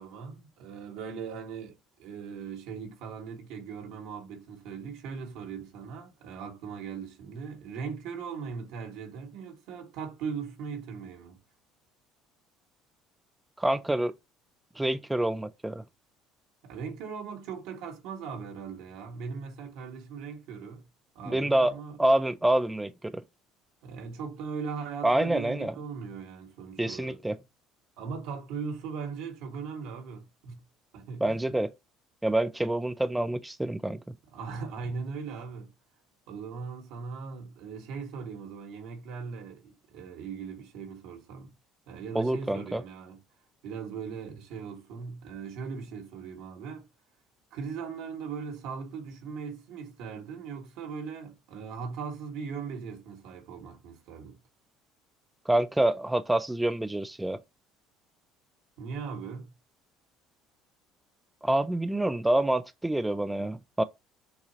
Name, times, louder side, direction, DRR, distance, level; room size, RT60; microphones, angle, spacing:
voice 1, 0.0-11.4 16.6-20.8 21.2-22.0 23.8-27.2 28.0-30.6 30.9-31.3 34.3-35.7 36.3-41.5 41.9-43.2 43.6-46.9 47.5-54.4 58.8-59.5, right 5 dB, 75° right, 1.8 m, -39 dB
voice 2, 13.6-14.1 14.8-15.8 21.2-23.2 25.0-25.7 26.8-27.4 31.2-31.7 32.2-34.0 42.1-42.8 55.5-57.4 61.4-63.8, right 1 dB, 10° right, 0.3 m, -27 dB
6.6 x 2.8 x 2.8 m
supercardioid pair, 100°, 0 cm